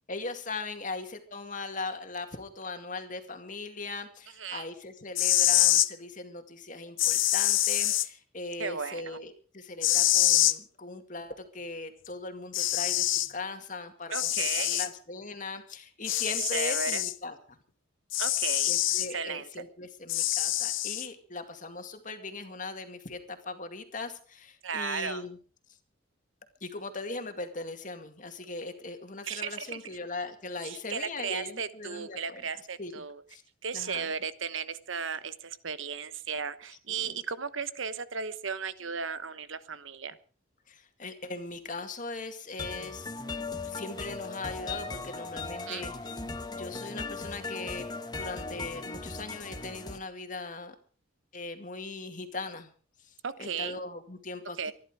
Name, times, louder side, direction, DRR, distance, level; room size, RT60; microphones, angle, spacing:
voice 1, 0.1-17.6 18.7-25.4 26.6-32.4 32.8-33.0 33.3-33.4 33.7-34.1 36.9-37.2 40.7-43.1 43.6-46.1 46.5-47.9 48.1-50.8 51.3-52.7 53.0-53.1 53.4-54.7, left 3 dB, 40° left, 7 dB, 2.2 m, -39 dB
sound 1, 5.0-5.9 7.0-8.1 9.8-10.6 12.1-12.2 12.5-13.3 14.1-14.9 16.1-17.1 18.1-19.1 20.1-21.1, left 14 dB, 80° left, 0.8 m, -25 dB
voice 2, 8.6-9.2 14.1-14.9 16.4-17.0 18.2-18.7 19.1-19.6 24.6-25.2 29.2-29.8 30.6-33.2 33.6-40.2 45.7-45.8 53.2-53.8 54.6-54.7, right 6 dB, 80° right, 14 dB, 1.1 m, -35 dB
sound 2, 42.6-50.0, left 3 dB, 20° left, 1.1 m, -38 dB
24.5 x 11.0 x 4.9 m, 0.42 s
head